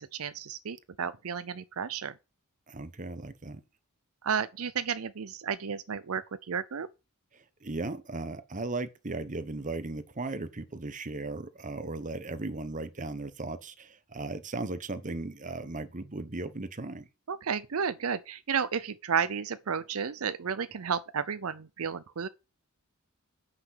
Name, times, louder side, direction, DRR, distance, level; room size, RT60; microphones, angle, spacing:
voice 1, 0.0-2.1 4.2-6.2 6.5-6.9 17.3-22.3, right 6 dB, 75° right, 0.6 m, -32 dB
voice 2, 2.7-3.6 7.3-17.1, right 2 dB, 35° right, 1.2 m, -37 dB
8.8 x 6.0 x 7.7 m
head